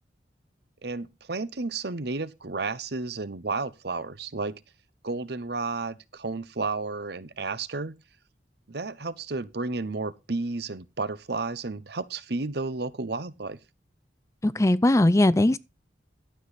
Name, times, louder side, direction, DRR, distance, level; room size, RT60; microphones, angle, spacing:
voice 1, 0.8-4.6 5.0-8.0 8.7-13.6, right 3 dB, 60° right, 0.9 m, -32 dB
voice 2, 14.4-15.6, left 1 dB, 15° left, 0.5 m, -20 dB
12.5 x 8.2 x 4.2 m
head